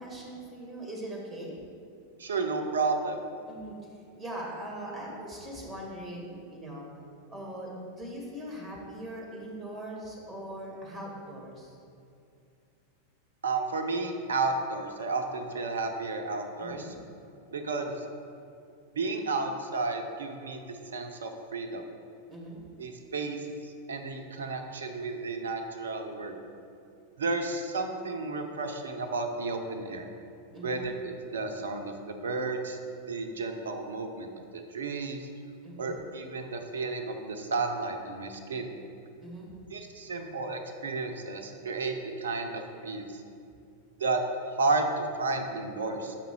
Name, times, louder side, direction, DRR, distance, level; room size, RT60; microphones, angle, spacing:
voice 1, 0.0-1.5 3.5-3.7 4.1-6.9 7.3-11.8 16.6-16.9 22.3-22.6 30.5-30.8 35.6-35.9 39.2-39.5, right 1 dB, 10° right, -3 dB, 1.8 m, -41 dB
voice 2, 2.2-3.2 13.4-16.9 17.5-18.0 18.9-21.8 22.8-26.4 27.2-30.1 30.6-35.3 35.8-38.7 39.7-43.1 44.0-46.2, right 3 dB, 65° right, 5 dB, 0.7 m, -32 dB
7.5 x 5.3 x 4.6 m, 2.6 s
figure-of-eight pair, 90°, 0 cm